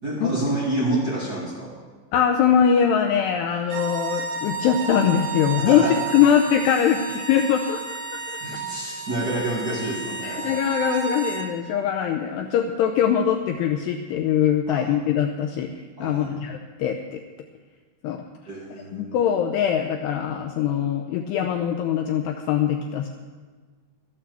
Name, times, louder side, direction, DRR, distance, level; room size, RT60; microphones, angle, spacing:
voice 1, 0.0-1.7 5.6-6.0 8.4-10.5 14.7-14.9 16.0-16.3 18.5-19.2, right 1 dB, 30° right, -7 dB, 2.0 m, -28 dB
voice 2, 2.1-5.9 6.1-8.0 10.2-15.7 16.0-17.2 18.0-18.2 18.9-23.1, left 8 dB, 85° left, 4 dB, 2.4 m, -22 dB
sound 1, 3.6-11.5, right 5 dB, 60° right, 2.9 m, -32 dB
13.5 x 8.9 x 6.8 m, 1.5 s
omnidirectional pair, 5.4 m